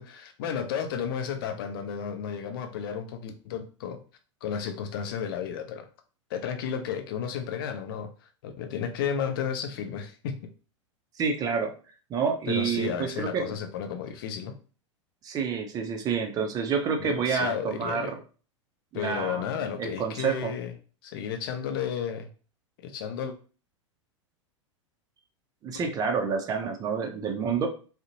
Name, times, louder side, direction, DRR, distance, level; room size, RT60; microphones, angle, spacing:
voice 1, 0.0-4.0 4.4-5.9 6.3-8.1 8.4-10.4 12.5-14.6 17.0-18.2 18.9-20.7 21.0-22.3 22.8-23.3 25.7-25.9, left 7 dB, 45° left, 6 dB, 0.4 m, -33 dB
voice 2, 11.2-11.7 12.1-13.5 15.2-18.2 18.9-20.5 25.6-27.7, right 6 dB, 25° right, 4 dB, 0.5 m, -28 dB
2.5 x 2.1 x 2.6 m, 0.37 s
figure-of-eight pair, 90°, 16 cm